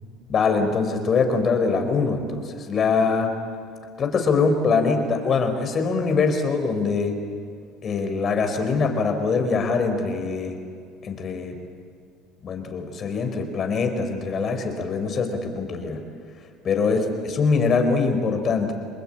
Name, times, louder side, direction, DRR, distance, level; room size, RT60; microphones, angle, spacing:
voice 1, 0.3-3.3 4.0-7.2 7.8-10.6 11.0-11.6 12.4-16.0 16.6-17.0 17.2-18.7, left 4 dB, 40° left, 6 dB, 4.3 m, -23 dB
29.0 x 21.5 x 8.9 m, 2.1 s
supercardioid pair, 110°, 0 cm